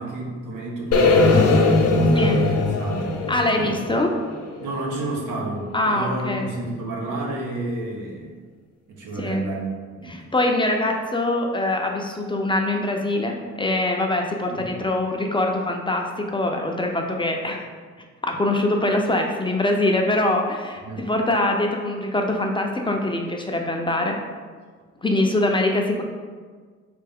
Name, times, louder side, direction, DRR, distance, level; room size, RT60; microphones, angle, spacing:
voice 1, 0.0-1.5 1.9-3.1 3.5-3.8 4.6-8.4 8.9-9.7 10.0-10.1 14.5-14.7 20.8-21.0, right 2 dB, 85° right, -3 dB, 1.1 m, -30 dB
sound 1, 0.9-5.0, left 3 dB, 50° left, 0.7 m, -19 dB
voice 2, 3.3-4.2 5.7-6.5 9.2-9.5 10.1-17.7 18.2-24.2 25.0-26.0, left 1 dB, 15° left, 1 dB, 0.5 m, -23 dB
4.1 x 3.3 x 3.5 m, 1.5 s
cardioid pair, 90°, 30 cm